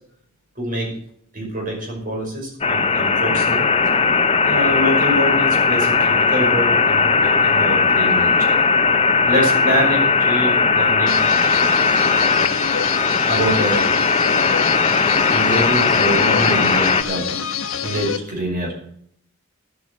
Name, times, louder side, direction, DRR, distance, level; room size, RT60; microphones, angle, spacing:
voice 1, 0.6-0.9 1.3-3.7 4.4-8.6 9.2-11.2 12.3-12.6 13.3-13.9 15.3-17.4 17.8-18.7, equal, 40° right, -1 dB, 5.7 m, -25 dB
sound 1, 2.6-17.0, left 4 dB, 30° left, 0.7 m, -17 dB
sound 2, 11.1-18.2, left 7 dB, 70° left, 1.4 m, -27 dB
11.5 x 8.5 x 7.6 m, 0.66 s
head